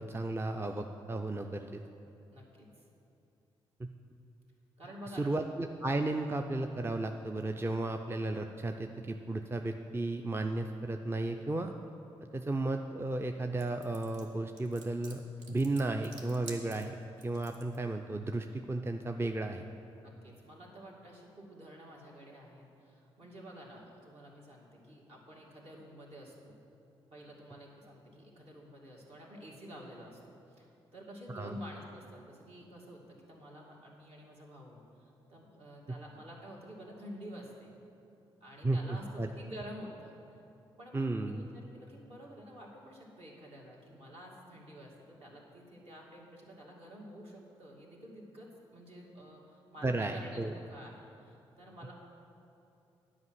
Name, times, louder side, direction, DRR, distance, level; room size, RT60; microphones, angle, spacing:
voice 1, 0.0-1.8 3.8-3.9 5.2-11.7 12.3-15.2 15.5-17.0 17.2-19.6 31.3-31.6 38.6-39.3 40.9-41.4 49.8-50.5, right 2 dB, 20° right, 5 dB, 0.5 m, -34 dB
voice 2, 2.3-2.8 4.8-5.3 20.0-26.6 27.1-37.7 38.4-40.4 40.8-51.9, equal, 55° right, -3 dB, 2.3 m, -50 dB
sound 1, 13.6-17.8, right 3 dB, 75° right, 1.1 m, -50 dB
9.6 x 5.1 x 7.9 m, 2.7 s
hypercardioid pair, 40°, 12 cm